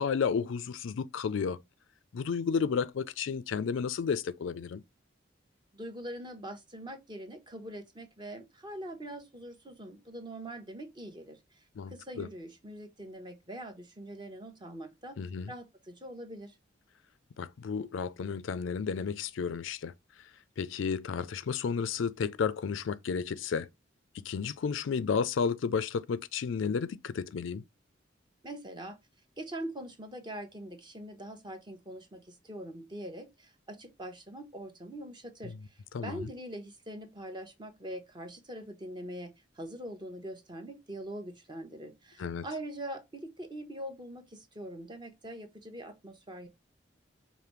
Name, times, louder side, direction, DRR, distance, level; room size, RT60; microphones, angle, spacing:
voice 1, 0.0-1.6 2.1-4.8 11.8-12.3 15.2-15.5 17.4-19.9 20.6-23.7 24.1-27.6 35.4-35.5 35.9-36.3 42.2-42.4, left 6 dB, 80° left, 0.4 m, -32 dB
voice 2, 5.7-11.6 11.9-15.2 15.5-16.5 28.4-29.0 29.4-46.5, right 1 dB, 25° right, 0.8 m, -43 dB
5.0 x 2.6 x 3.0 m
head